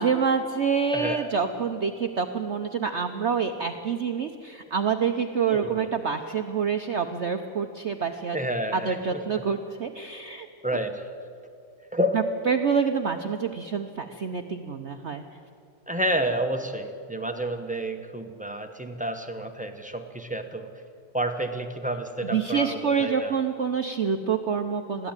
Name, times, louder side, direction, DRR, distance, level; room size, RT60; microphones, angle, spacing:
voice 1, 0.0-8.4 8.7-10.5 12.1-15.2 22.2-25.1, right 6 dB, 75° right, 6 dB, 0.6 m, -27 dB
voice 2, 0.9-1.3 5.5-5.9 8.3-9.2 10.6-11.1 11.9-12.2 15.9-20.7 21.1-23.3, right 1 dB, 10° right, 6 dB, 0.4 m, -30 dB
21.5 x 15.5 x 9.0 m, 2.6 s
omnidirectional pair, 2.3 m